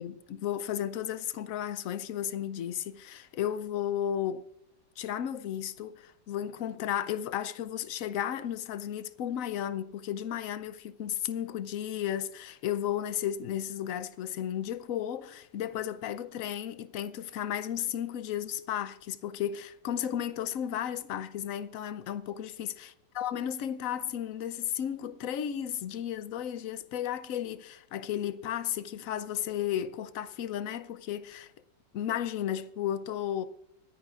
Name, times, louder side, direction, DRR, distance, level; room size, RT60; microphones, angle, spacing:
voice 1, 0.0-4.5 5.0-22.7 23.2-31.5 31.9-33.5, left 10 dB, 65° left, 0.8 m, -34 dB
26.0 x 10.5 x 2.4 m
omnidirectional pair, 2.0 m